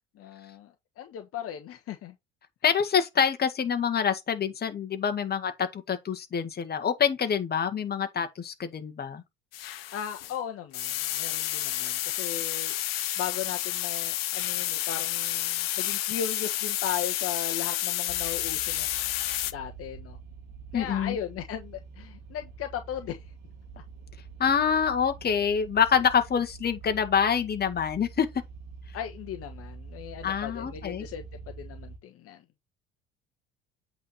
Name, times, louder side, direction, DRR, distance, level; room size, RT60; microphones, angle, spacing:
voice 1, 0.1-2.1 9.9-12.8 13.2-18.9 19.5-20.2 20.7-23.3 28.9-31.2 31.6-32.4, left 9 dB, 50° left, 1.3 m, -37 dB
voice 2, 2.6-9.2 20.7-21.2 24.4-28.3 30.2-31.1, left 7 dB, 35° left, 1.7 m, -26 dB
sound 1, 9.5-10.4 10.7-19.5, left 14 dB, 80° left, 0.7 m, -30 dB
sound 2, 18.1-32.0, right 5 dB, 65° right, 1.9 m, -46 dB
8.4 x 4.5 x 4.2 m
hypercardioid pair, 70°, 29 cm